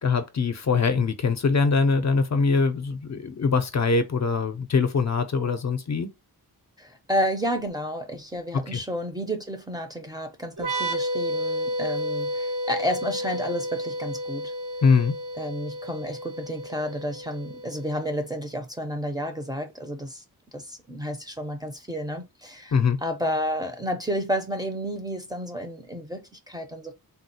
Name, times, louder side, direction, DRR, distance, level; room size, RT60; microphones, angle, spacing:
voice 1, 0.0-6.1 8.5-8.8 14.8-15.2 22.7-23.0, left 4 dB, 45° left, 0.5 m, -23 dB
voice 2, 6.8-14.5 15.4-20.2 20.5-22.7 23.0-26.9, equal, 10° right, 0.5 m, -31 dB
sound 1, 10.6-18.1, equal, 90° right, 1.1 m, -31 dB
3.5 x 2.3 x 2.6 m
wide cardioid pair, 140°, 39 cm